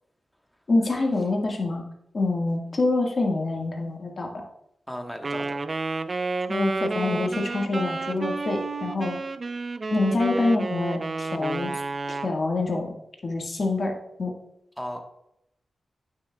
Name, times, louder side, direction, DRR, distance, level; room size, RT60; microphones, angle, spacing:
voice 1, 0.7-1.8 2.1-4.4 6.5-9.2 9.9-11.7 12.1-12.9 13.2-13.9 14.2-14.3, left 2 dB, 50° left, 1 dB, 1.7 m, -26 dB
voice 2, 4.9-5.6 14.8-15.0, equal, 5° left, 4 dB, 1.2 m, -35 dB
Wind instrument woodwind instrument, 5.2-12.3, right 3 dB, 45° right, 0.4 m, -31 dB
9.4 x 6.2 x 2.3 m, 0.78 s
cardioid pair, 70°, 0 cm